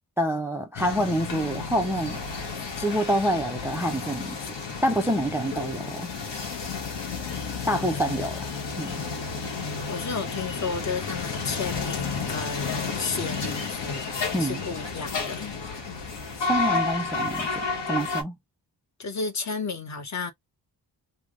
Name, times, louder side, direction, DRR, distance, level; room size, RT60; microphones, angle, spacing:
voice 1, 0.2-2.2 2.8-4.5 4.8-6.1 7.7-8.5 8.8-9.0 14.3-14.6 16.4-18.4, equal, 5° right, 0.3 m, -27 dB
sound 1, 0.8-18.2, left 4 dB, 70° left, 1.3 m, -31 dB
voice 2, 7.8-8.2 9.9-14.1 14.4-15.6 19.0-20.3, left 4 dB, 40° left, 0.8 m, -33 dB
3.4 x 2.0 x 3.5 m
wide cardioid pair, 170°, 44 cm